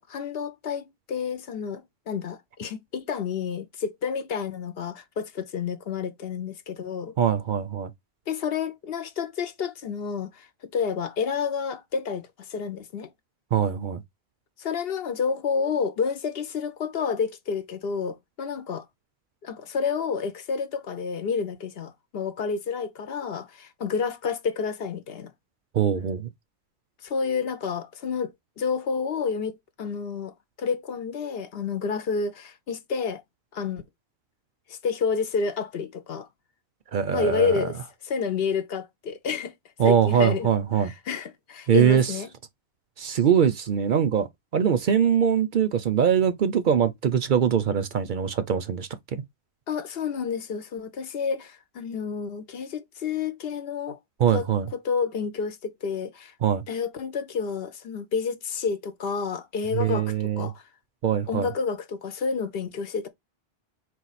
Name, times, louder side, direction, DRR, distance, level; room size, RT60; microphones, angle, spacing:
voice 1, 0.0-7.1 8.3-10.5 10.7-13.1 14.6-18.8 19.4-25.3 27.0-33.2 33.5-33.8 34.7-36.3 37.1-39.5 39.8-42.3 49.7-56.3 56.7-60.6 61.3-63.1, left 6 dB, 70° left, 0.9 m, -30 dB
voice 2, 7.2-7.9 13.5-14.0 25.7-26.3 36.9-37.6 39.8-40.9 41.7-42.1 43.0-44.3 44.5-48.9 54.2-54.7 56.4-56.6 59.7-60.5 61.0-61.5, right 8 dB, 55° right, 0.6 m, -22 dB
4.3 x 2.4 x 4.0 m
omnidirectional pair, 1.1 m